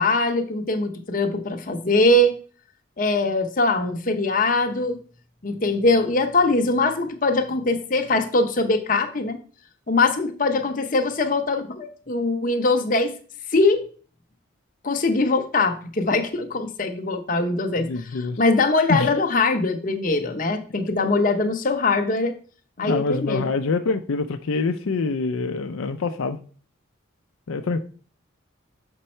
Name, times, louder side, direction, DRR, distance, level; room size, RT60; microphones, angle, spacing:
voice 1, 0.0-2.3 3.0-5.0 5.4-9.4 9.9-13.1 13.5-13.8 14.8-22.3 22.8-23.5, left 2 dB, 40° left, 0.8 m, -22 dB
voice 2, 17.9-18.4 18.9-19.1 22.8-26.4 27.5-27.8, left 3 dB, 75° left, 0.5 m, -25 dB
6.7 x 5.4 x 4.3 m
head